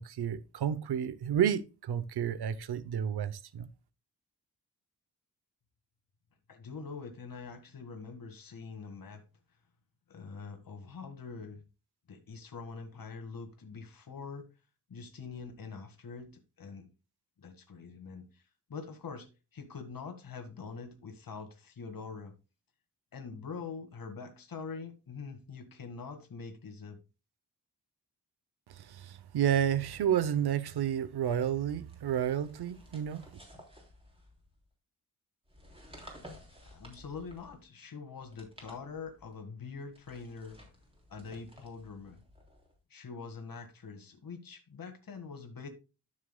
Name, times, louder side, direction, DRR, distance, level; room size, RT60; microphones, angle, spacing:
voice 1, 0.0-3.7 28.7-33.3, right 9 dB, 90° right, 0.7 m, -31 dB
voice 2, 6.5-9.2 10.1-11.6 12.1-14.5 14.9-16.9 17.4-18.4 18.7-19.3 19.5-22.3 23.1-27.0 36.6-40.6 41.1-42.2 42.9-45.7, left 5 dB, 60° left, 1.9 m, -44 dB
sound 1, 31.8-34.6 35.4-37.7 38.2-39.3 39.9-42.8, equal, 15° right, 3.3 m, -54 dB
13.0 x 6.4 x 2.2 m
wide cardioid pair, 115°, 38 cm